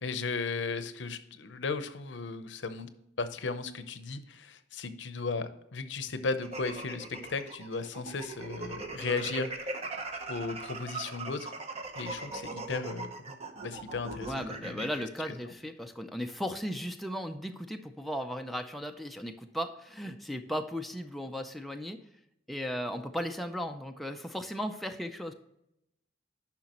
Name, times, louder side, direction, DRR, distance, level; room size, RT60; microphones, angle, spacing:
voice 1, 0.0-2.9 3.2-9.5 10.3-11.5 11.9-13.4 13.6-14.8 15.3-15.4, left 4 dB, 70° left, 11 dB, 0.7 m, -35 dB
sound 1, 6.4-15.0, right 3 dB, 35° right, 0.9 m, -40 dB
voice 2, 14.2-22.0 22.5-25.3, equal, ahead, 4 dB, 0.4 m, -36 dB
10.5 x 5.8 x 3.0 m, 0.83 s
head